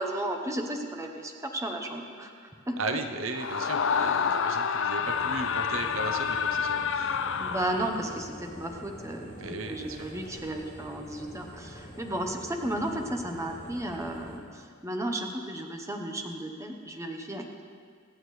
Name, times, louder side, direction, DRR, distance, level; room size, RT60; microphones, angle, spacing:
voice 1, 0.0-2.3 2.7-2.8 7.4-17.6, right 1 dB, 15° right, 3 dB, 0.9 m, -34 dB
voice 2, 2.8-7.2 9.4-10.0, right 3 dB, 65° right, 5 dB, 0.8 m, -36 dB
Screaming, 3.3-8.2, left 6 dB, 60° left, 0.5 m, -28 dB
sound 1, 5.0-14.4, equal, 30° left, 2.2 m, -46 dB
26.0 x 8.8 x 3.2 m, 2.1 s
head